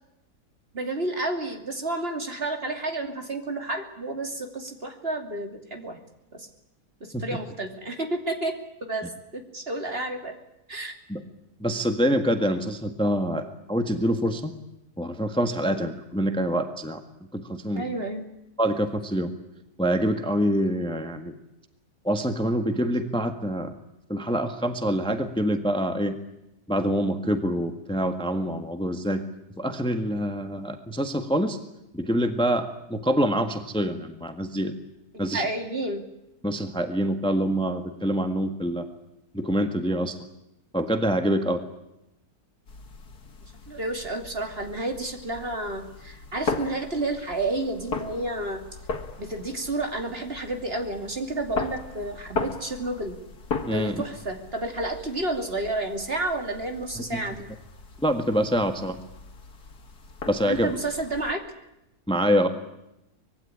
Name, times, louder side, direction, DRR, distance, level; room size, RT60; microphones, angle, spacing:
voice 1, 0.7-6.0 6.3-6.5 7.0-8.5 8.9-9.1 9.3-10.3 10.7-10.9 15.6-15.7 17.7-18.2 35.3-36.0 43.7-48.6 49.2-53.2 53.7-57.5 60.4-61.4, right 2 dB, 35° right, 5 dB, 3.0 m, -30 dB
voice 2, 11.6-14.5 15.0-17.0 17.3-17.9 18.6-19.3 19.8-21.3 22.0-23.7 24.1-26.2 26.7-29.2 29.6-31.6 31.9-34.7 35.2-35.4 36.4-38.9 39.3-40.2 40.7-41.6 53.7-54.0 57.1-57.3 58.0-59.0 60.3-60.7 62.1-62.5, equal, 5° left, 7 dB, 1.5 m, -25 dB
sound 1, 42.7-61.3, left 4 dB, 75° left, 2.6 m, -38 dB
25.0 x 20.0 x 9.9 m, 0.88 s
omnidirectional pair, 1.7 m